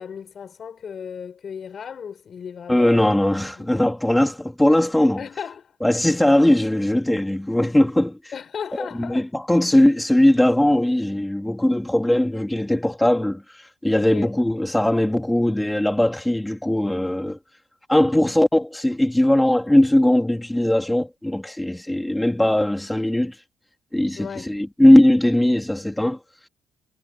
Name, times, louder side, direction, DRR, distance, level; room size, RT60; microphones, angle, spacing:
voice 1, 0.0-3.2 3.6-3.7 5.2-5.8 8.3-9.3 9.7-10.0 13.9-14.3 24.2-24.5, left 7 dB, 40° left, 6.0 m, -35 dB
voice 2, 2.7-5.2 5.8-8.2 9.1-17.4 17.9-23.3 23.9-26.2, left 1 dB, 5° left, 2.7 m, -19 dB
cardioid pair, 125°, 0 cm